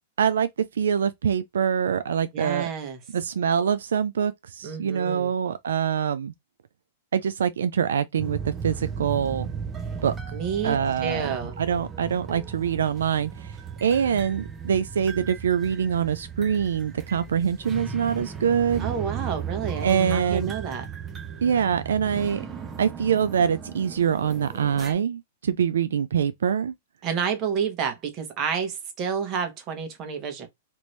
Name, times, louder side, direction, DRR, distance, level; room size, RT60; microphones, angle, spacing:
voice 1, 0.2-2.7 3.1-6.3 7.1-9.5 10.0-10.2 10.6-13.5 13.8-18.9 19.8-20.5 21.4-22.4 22.8-26.7, right 8 dB, 85° right, 0.3 m, -24 dB
voice 2, 2.3-3.0 4.6-5.3 10.3-11.6 18.8-20.9 27.0-30.5, right 7 dB, 35° right, 1.1 m, -29 dB
sound 1, 8.2-24.9, right 6 dB, 20° right, 0.7 m, -36 dB
2.9 x 2.6 x 3.1 m
hypercardioid pair, 130°, 0 cm